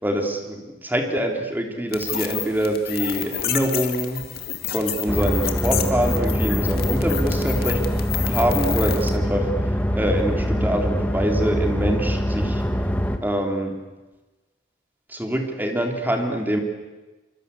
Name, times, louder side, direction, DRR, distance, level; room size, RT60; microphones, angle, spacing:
voice 1, 0.0-4.2 4.7-7.8 8.2-9.5 9.9-12.6 13.2-13.7 15.1-16.6, right 1 dB, 10° right, 3 dB, 3.4 m, -25 dB
sound 1, 1.9-9.2, left 10 dB, 55° left, 2.3 m, -30 dB
sound 2, 5.1-13.2, equal, 10° left, 1.6 m, -23 dB
25.0 x 24.5 x 8.3 m, 1.2 s
head